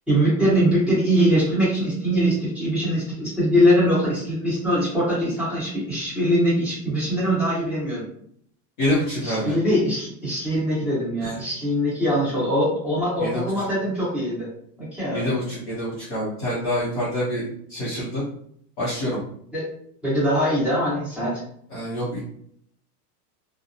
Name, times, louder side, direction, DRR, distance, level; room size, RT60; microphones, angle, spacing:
voice 1, 0.1-8.0 9.2-14.5 14.8-15.4 19.5-19.6 20.0-21.4, equal, ahead, -13 dB, 1.0 m, -22 dB
voice 2, 8.8-9.5 11.2-11.3 13.2-13.5 15.1-18.2 18.8-19.2 21.7-22.2, left 1 dB, 35° left, -8 dB, 0.6 m, -26 dB
2.7 x 2.0 x 2.5 m, 0.66 s
supercardioid pair, 175°, 50 cm